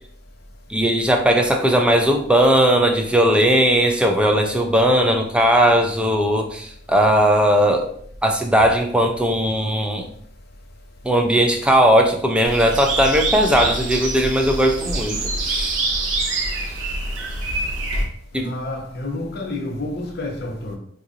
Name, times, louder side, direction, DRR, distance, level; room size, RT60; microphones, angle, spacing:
voice 1, 0.7-7.9 8.2-10.1 11.0-15.8 18.3-18.5, equal, 5° right, 0.4 m, -18 dB
sound 1, 12.4-18.0, right 2 dB, 90° right, 0.8 m, -25 dB
voice 2, 18.3-20.8, left 2 dB, 55° left, 0.8 m, -29 dB
4.8 x 2.5 x 2.7 m
head